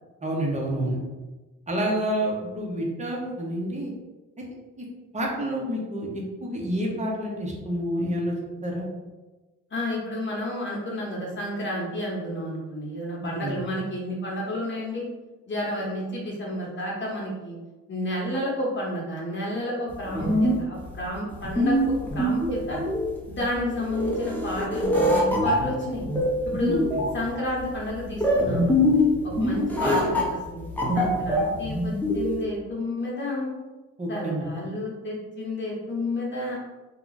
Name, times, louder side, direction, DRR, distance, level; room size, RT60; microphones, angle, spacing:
voice 1, 0.2-1.0 1.7-3.9 4.8-4.9 5.1-8.3 8.6-8.9 13.2-13.6 26.6-27.0 29.8-29.9 34.0-34.5, right 1 dB, 25° right, -2 dB, 0.9 m, -29 dB
voice 2, 9.7-15.0 15.5-17.6 17.9-21.7 22.1-22.8 23.3-26.1 26.4-26.8 27.1-30.6 30.9-33.5 34.1-36.6, left 1 dB, 40° left, -3 dB, 1.1 m, -31 dB
sound 1, 19.9-32.4, left 1 dB, 5° left, 0.8 m, -24 dB
2.9 x 2.4 x 4.0 m, 1.2 s
cardioid pair, 90°, 30 cm